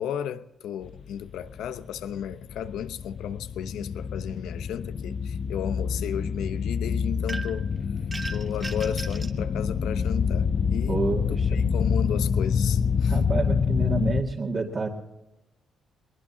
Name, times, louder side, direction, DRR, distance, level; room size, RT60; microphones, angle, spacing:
voice 1, 0.0-7.7 8.3-11.0 11.3-13.2, left 9 dB, 85° left, 0.9 m, -34 dB
sound 1, 0.8-14.2, left 6 dB, 45° left, 0.7 m, -27 dB
sound 2, 7.3-7.7 8.1-9.4, right 2 dB, 20° right, 1.1 m, -37 dB
voice 2, 10.9-11.8 13.1-14.9, right 3 dB, 45° right, 2.2 m, -29 dB
22.0 x 19.5 x 2.8 m
cardioid pair, 90°, 0 cm